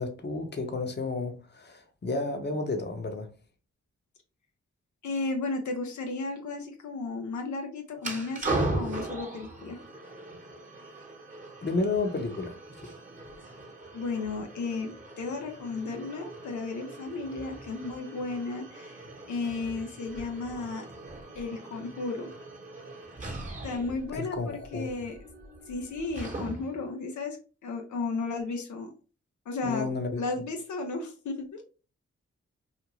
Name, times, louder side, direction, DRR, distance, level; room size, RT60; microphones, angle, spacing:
voice 1, 0.0-3.3 11.6-12.6 24.1-25.1 29.6-30.2, left 3 dB, 35° left, 0.8 m, -31 dB
voice 2, 5.0-9.8 13.9-20.9 21.3-22.3 23.6-25.2 25.7-27.4 27.6-28.9 29.5-29.9 30.2-31.6, left 3 dB, 75° left, 0.6 m, -34 dB
sound 1, 8.0-26.9, right 2 dB, 25° right, 1.0 m, -39 dB
2.5 x 2.5 x 2.9 m
cardioid pair, 50°, 29 cm